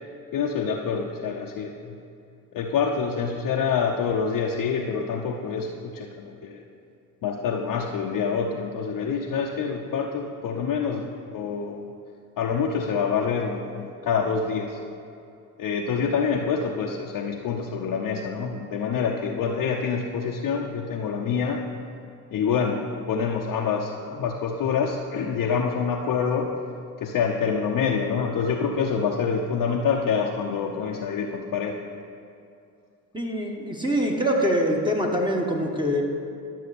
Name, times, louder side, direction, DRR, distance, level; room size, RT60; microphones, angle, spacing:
voice 1, 0.3-2.0 2.5-6.6 7.2-11.1 11.3-11.8 12.4-14.8 15.6-21.6 22.3-26.5 27.0-31.7, left 6 dB, 50° left, -1 dB, 0.8 m, -26 dB
voice 2, 33.1-36.0, equal, 10° right, -1 dB, 1.4 m, -24 dB
11.5 x 6.4 x 4.3 m, 2.5 s
hypercardioid pair, 55°, 42 cm